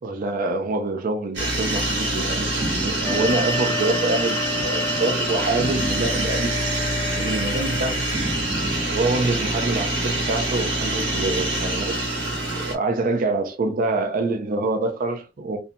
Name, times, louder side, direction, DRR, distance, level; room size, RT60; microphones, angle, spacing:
voice 1, 0.0-8.2 8.9-12.0 12.6-15.6, right 2 dB, 50° right, 0.4 m, -26 dB
sound 1, 1.3-12.7, right 1 dB, 70° right, 1.1 m, -25 dB
Wind instrument woodwind instrument, 3.0-7.9, left 3 dB, 15° left, 0.4 m, -31 dB
2.6 x 2.1 x 2.6 m
head